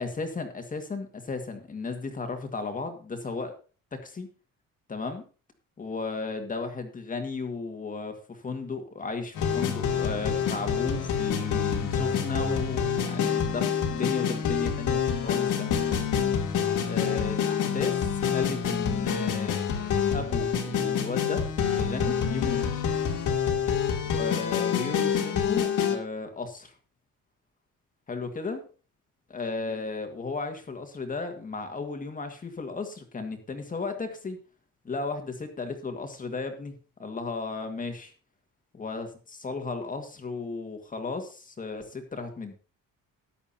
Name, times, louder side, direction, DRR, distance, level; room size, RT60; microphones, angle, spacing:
voice 1, 0.0-3.5 3.9-4.3 4.9-5.3 5.8-15.9 16.8-19.6 20.1-21.5 21.7-22.8 24.1-26.8 28.1-28.6 29.3-34.4 34.8-36.7 37.0-38.1 38.7-42.5, left 4 dB, 25° left, 6 dB, 2.0 m, -35 dB
sound 1, 9.3-26.0, left 7 dB, 65° left, 2.6 m, -27 dB
14.0 x 11.0 x 2.8 m, 0.36 s
cardioid pair, 150°, 33 cm